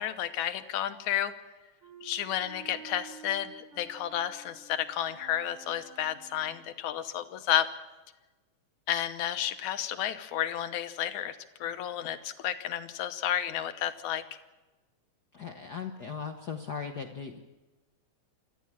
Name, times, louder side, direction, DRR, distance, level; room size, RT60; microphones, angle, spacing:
voice 1, 0.0-1.3 2.0-7.7 8.9-14.2, left 11 dB, 85° left, 10 dB, 2.5 m, -32 dB
Wind instrument woodwind instrument, 1.8-6.6, right 8 dB, 55° right, 4.7 m, -51 dB
voice 2, 15.3-17.4, left 6 dB, 65° left, 4 dB, 0.9 m, -38 dB
27.0 x 13.5 x 7.4 m, 1.1 s
omnidirectional pair, 3.3 m